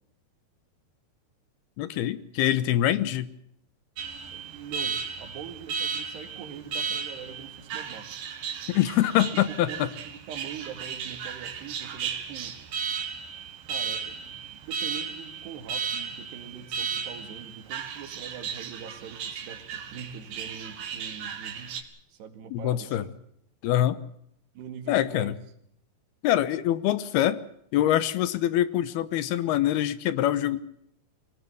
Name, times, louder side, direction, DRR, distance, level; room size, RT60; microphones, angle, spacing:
voice 1, 1.8-3.3 8.7-9.9 22.5-23.0 23.6-24.0 24.9-25.4 26.2-27.4 27.7-30.6, left 12 dB, 75° left, 16 dB, 2.9 m, -24 dB
Alarm, 4.0-21.8, right 6 dB, 60° right, 3.6 m, -35 dB
voice 2, 4.3-8.3 9.2-9.3 9.7-12.6 13.7-23.1 24.6-25.4, right 7 dB, 85° right, 8 dB, 4.3 m, -43 dB
23.5 x 18.5 x 7.8 m, 0.73 s
omnidirectional pair, 4.7 m